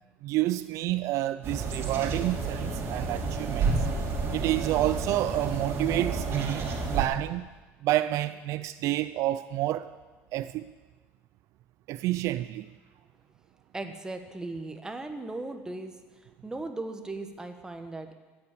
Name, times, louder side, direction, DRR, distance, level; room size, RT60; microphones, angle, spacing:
voice 1, 0.2-3.7 4.3-6.7 6.9-7.5 7.8-9.9 10.3-10.7 11.9-12.7, right 15 dB, 60° right, 0.4 m, -29 dB
sound 1, 1.4-7.0, right 4 dB, 40° right, 2.9 m, -30 dB
voice 2, 13.7-18.1, right 2 dB, 10° right, 1.4 m, -38 dB
13.5 x 8.6 x 8.4 m
cardioid pair, 120°, 6 cm